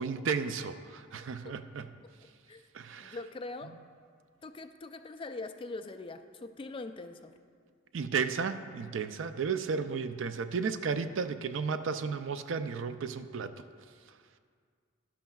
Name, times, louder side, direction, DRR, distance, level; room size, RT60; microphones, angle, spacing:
voice 1, 0.0-1.9 2.7-3.2 7.9-13.5, right 5 dB, 65° right, 11 dB, 0.4 m, -33 dB
voice 2, 3.0-3.7 4.4-7.3, left 3 dB, 25° left, 8 dB, 0.3 m, -42 dB
11.5 x 11.5 x 2.3 m, 2.1 s
head